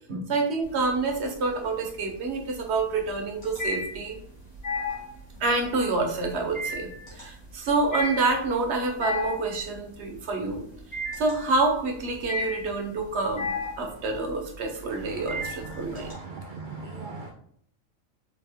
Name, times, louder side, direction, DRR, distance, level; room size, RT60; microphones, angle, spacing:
voice 1, 0.1-4.2 5.4-10.6 11.2-13.5 13.8-16.1, right 3 dB, 60° right, 2 dB, 1.1 m, -27 dB
sound 1, 0.6-1.3 1.6-16.1, left 2 dB, 60° left, 2.1 m, -34 dB
voice 2, 15.8-17.3, right 3 dB, 80° right, 2 dB, 0.4 m, -39 dB
4.2 x 3.4 x 3.5 m, 0.64 s
omnidirectional pair, 1.4 m